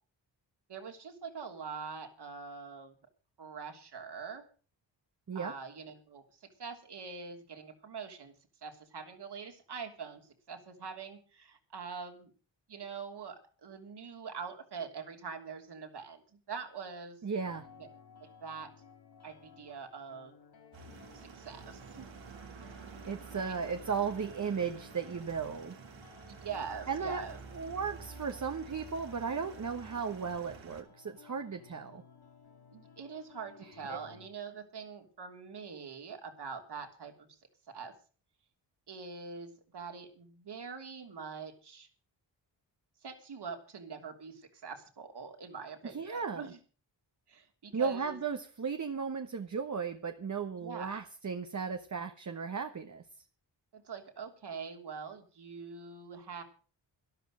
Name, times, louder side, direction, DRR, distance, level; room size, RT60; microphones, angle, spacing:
voice 1, 0.7-2.9 3.4-4.4 5.3-6.2 6.6-8.3 8.6-12.3 12.7-17.2 17.8-17.9 18.2-18.7 19.2-20.3 21.1-22.1 23.3-23.5 26.3-27.4 32.7-37.4 37.7-37.9 38.9-41.9 43.0-46.6 47.3-48.2 50.6-51.0 53.7-56.4, right 5 dB, 60° right, 5 dB, 3.2 m, -44 dB
voice 2, 17.2-17.7 23.1-25.8 26.9-27.2 27.5-32.0 33.9-34.0 45.9-46.5 47.7-53.0, right 6 dB, 40° right, 6 dB, 1.2 m, -35 dB
sound 1, 17.4-34.3, left 6 dB, 60° left, 4.6 m, -57 dB
sound 2, 20.7-30.8, right 5 dB, 80° right, 2.7 m, -50 dB
13.0 x 11.5 x 6.4 m, 0.39 s
cardioid pair, 65°, 45 cm